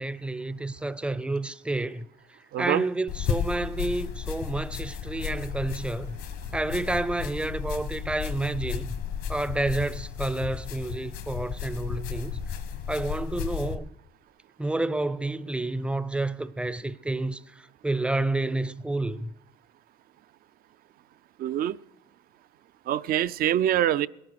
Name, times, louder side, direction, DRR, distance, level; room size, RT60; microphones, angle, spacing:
voice 1, 0.0-2.1 2.6-6.2 6.5-9.0 9.3-12.4 12.9-13.9 14.6-17.4 17.8-19.3, right 2 dB, 5° right, 0.5 m, -29 dB
voice 2, 2.5-2.8 21.4-21.8 22.9-24.1, right 11 dB, 60° right, 0.5 m, -24 dB
sound 1, 3.1-13.8, left 8 dB, 80° left, 1.2 m, -34 dB
21.0 x 8.7 x 6.5 m
cardioid pair, 110°, 17 cm